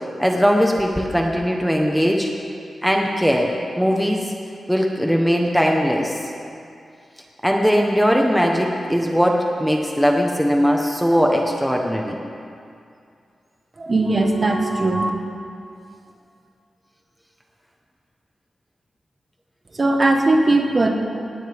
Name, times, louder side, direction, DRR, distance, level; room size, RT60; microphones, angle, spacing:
voice 1, 0.2-2.3 2.8-3.5 3.8-4.3 4.7-6.2 7.4-12.2, equal, ahead, 0 dB, 1.1 m, -19 dB
voice 2, 13.8-15.1 19.7-20.9, right 2 dB, 30° right, 2 dB, 1.4 m, -18 dB
19.0 x 17.5 x 3.6 m, 2.5 s
wide cardioid pair, 150°, 0 cm